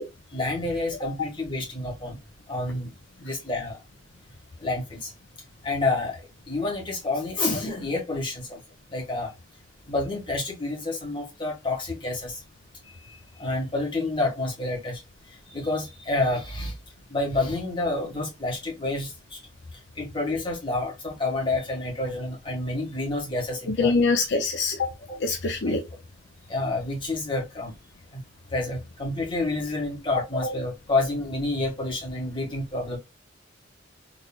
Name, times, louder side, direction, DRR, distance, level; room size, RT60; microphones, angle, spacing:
voice 1, 0.3-2.2 2.5-2.9 3.2-3.8 4.6-5.1 5.6-6.2 6.5-8.6 8.9-9.3 9.9-12.4 13.4-15.0 15.3-16.8 17.1-19.4 19.7-23.9 25.1-25.2 25.6-25.8 26.5-27.7 28.1-28.2 28.5-33.0, left 2 dB, 25° left, 1.7 m, -29 dB
voice 2, 23.7-24.9 25.2-25.8 30.1-30.2, left 4 dB, 60° left, 0.6 m, -24 dB
3.9 x 3.1 x 2.4 m
head